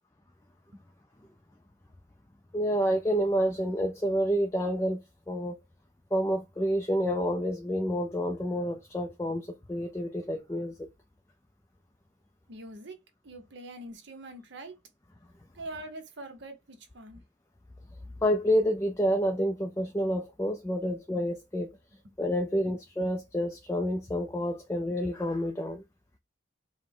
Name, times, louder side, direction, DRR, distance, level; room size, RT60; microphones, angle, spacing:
voice 1, 2.5-5.5 6.1-10.9 18.2-21.7 22.2-25.8, equal, 15° left, 0.4 m, -29 dB
voice 2, 12.5-14.8 15.5-17.2 20.8-21.0 22.0-22.1, right 1 dB, 55° right, 0.9 m, -44 dB
4.7 x 2.1 x 3.6 m
head